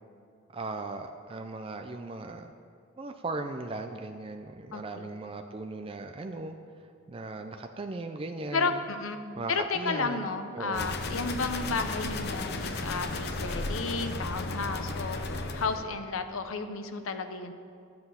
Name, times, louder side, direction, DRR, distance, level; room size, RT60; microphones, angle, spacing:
voice 1, 0.5-2.5 3.0-6.6 7.1-8.8 9.3-10.3 10.5-10.9, right 3 dB, 25° right, 5 dB, 0.4 m, -37 dB
voice 2, 4.7-5.1 8.5-9.2 9.5-17.5, left 4 dB, 85° left, 8 dB, 0.7 m, -32 dB
sound 1, 10.7-15.8, left 2 dB, 50° left, 0.7 m, -34 dB
12.0 x 7.7 x 5.7 m, 2.4 s
head